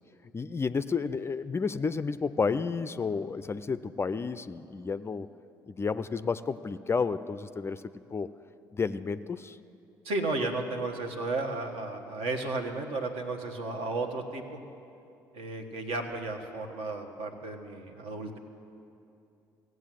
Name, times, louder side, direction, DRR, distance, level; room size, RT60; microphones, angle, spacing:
voice 1, 0.3-5.3 5.7-7.8 8.1-8.3 8.7-9.6, left 5 dB, 25° left, 13 dB, 0.4 m, -31 dB
voice 2, 10.0-14.6 15.3-18.4, right 2 dB, 60° right, 4 dB, 1.3 m, -33 dB
16.5 x 7.9 x 7.6 m, 2.7 s
figure-of-eight pair, 50°, 11 cm